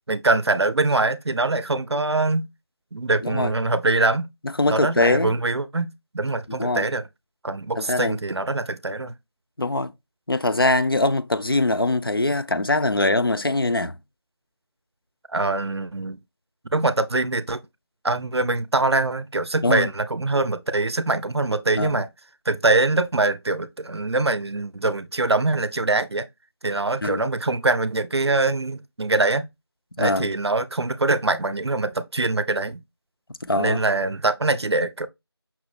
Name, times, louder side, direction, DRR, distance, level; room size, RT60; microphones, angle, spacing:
voice 1, 0.1-2.5 2.9-4.3 4.7-7.0 7.4-9.1 15.3-16.2 16.7-17.6 18.0-22.1 22.5-26.3 26.6-29.5 30.0-32.8 33.6-35.1, right 2 dB, 75° right, 0.5 m, -23 dB
voice 2, 4.6-5.3 6.6-6.9 7.8-8.2 9.6-9.9 10.3-13.9 19.6-19.9 21.8-22.0 27.0-27.2 30.0-30.3 33.4-33.8, left 2 dB, 55° left, 0.4 m, -22 dB
5.8 x 2.0 x 3.2 m
figure-of-eight pair, 180°, 14 cm